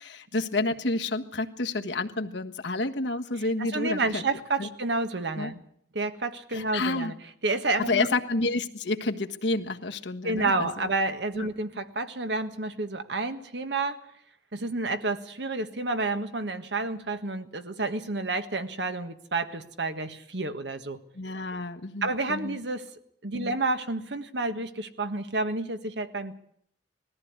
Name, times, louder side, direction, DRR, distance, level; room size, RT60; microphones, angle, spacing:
voice 1, 0.0-4.2 4.6-4.7 5.4-5.5 6.5-7.1 7.9-10.9 11.3-11.5 21.1-22.6 23.3-23.5, left 2 dB, 80° left, 5 dB, 1.5 m, -30 dB
voice 2, 3.6-5.6 5.9-7.1 7.4-8.1 10.2-14.0 14.5-21.0 22.0-22.8 23.2-26.3, right 3 dB, 75° right, 9 dB, 1.6 m, -30 dB
20.5 x 14.0 x 9.5 m, 0.68 s
head